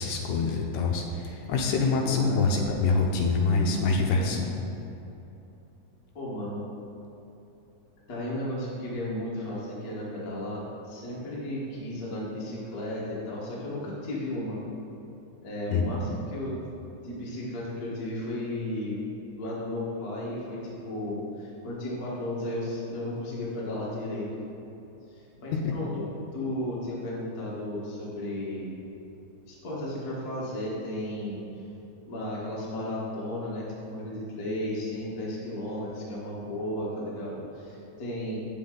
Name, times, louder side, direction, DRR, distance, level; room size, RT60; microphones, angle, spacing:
voice 1, 0.0-4.4 15.7-15.8 25.5-25.6, left 4 dB, 80° left, 1 dB, 1.8 m, -25 dB
voice 2, 2.0-2.5 4.1-4.5 6.1-6.6 8.1-14.6 15.4-16.6 17.0-19.0 19.4-24.4 25.1-28.7 29.4-31.4 32.0-38.4, left 1 dB, 55° left, -6 dB, 1.0 m, -34 dB
9.1 x 7.6 x 3.8 m, 2.9 s
omnidirectional pair, 4.1 m